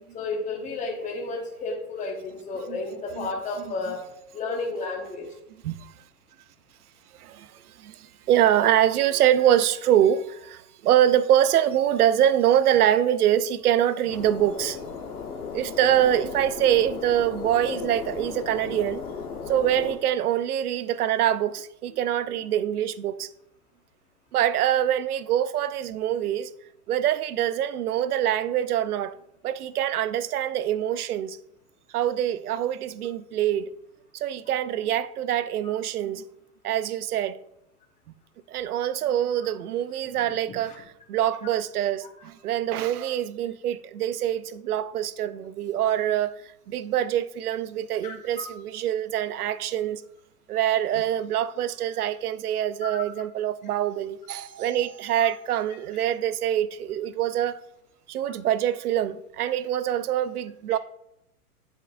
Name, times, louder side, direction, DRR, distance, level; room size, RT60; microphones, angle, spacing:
voice 1, 0.1-4.0 4.3-5.3 17.6-17.8 40.1-40.3 40.6-40.8 48.0-48.5, left 3 dB, 15° left, 1.1 m, -32 dB
voice 2, 7.2-14.8 15.5-19.0 19.5-23.3 24.3-26.5 26.9-29.1 29.4-31.4 31.9-33.7 34.1-36.2 36.6-37.4 38.5-50.0 50.5-57.6 58.1-60.8, right 11 dB, 85° right, 0.6 m, -24 dB
sound 1, 14.1-20.0, left 6 dB, 90° left, 1.3 m, -36 dB
7.9 x 6.9 x 2.5 m
hypercardioid pair, 115°, 44 cm